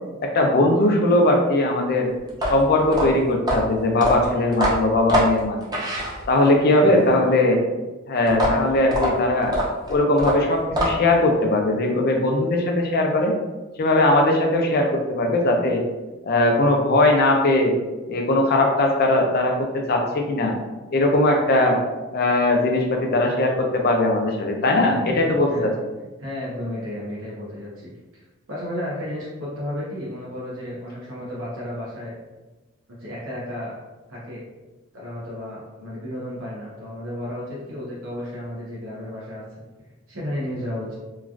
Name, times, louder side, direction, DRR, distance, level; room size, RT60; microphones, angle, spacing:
voice 1, 0.2-2.1 2.4-5.6 6.3-7.6 8.1-9.5 9.9-13.3 13.8-15.8 16.2-17.7 18.1-20.5 20.9-21.8 22.1-25.7, left 2 dB, 50° left, 2 dB, 0.5 m, -19 dB
sound 1, 2.3-6.6 8.3-11.2, equal, 20° right, 0.6 m, -24 dB
voice 2, 6.6-7.0 24.7-25.7 26.2-32.1 33.0-33.7 34.1-34.4 34.9-39.4 39.8-41.0, left 1 dB, 75° right, -7 dB, 0.8 m, -33 dB
3.0 x 2.4 x 2.5 m, 1.2 s
head